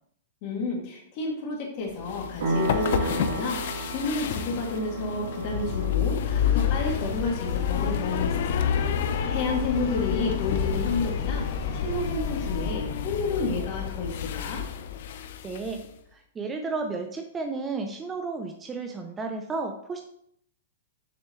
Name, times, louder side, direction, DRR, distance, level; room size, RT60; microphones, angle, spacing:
voice 1, 0.4-8.7 9.0-11.4 11.7-14.6, left 3 dB, 45° left, -1 dB, 2.5 m, -31 dB
sound 1, 2.0-15.9, left 9 dB, 65° left, 0.6 m, -29 dB
sound 2, 2.4-10.7, right 2 dB, 80° right, 2.1 m, -35 dB
sound 3, 6.2-12.7, left 1 dB, 20° left, 2.9 m, -35 dB
voice 2, 15.4-15.8 16.1-20.0, right 4 dB, 15° right, 4 dB, 0.6 m, -33 dB
6.9 x 6.3 x 3.2 m, 0.71 s
hypercardioid pair, 130°, 0 cm